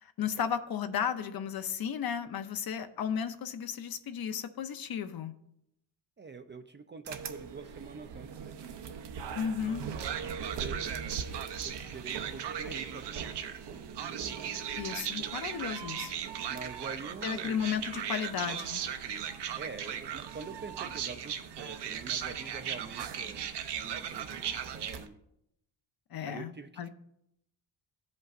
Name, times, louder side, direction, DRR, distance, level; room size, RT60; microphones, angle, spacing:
voice 1, 0.0-5.3 9.3-9.8 14.8-16.1 17.2-18.8 26.1-26.9, left 8 dB, 55° left, 10 dB, 0.6 m, -34 dB
voice 2, 6.2-8.8 9.9-13.9 16.5-17.6 19.0-25.2 26.2-26.9, right 4 dB, 25° right, 8 dB, 0.4 m, -46 dB
sound 1, 7.1-25.1, right 8 dB, 65° right, 0.7 m, -37 dB
14.5 x 5.3 x 2.5 m, 0.79 s
cardioid pair, 105°, 44 cm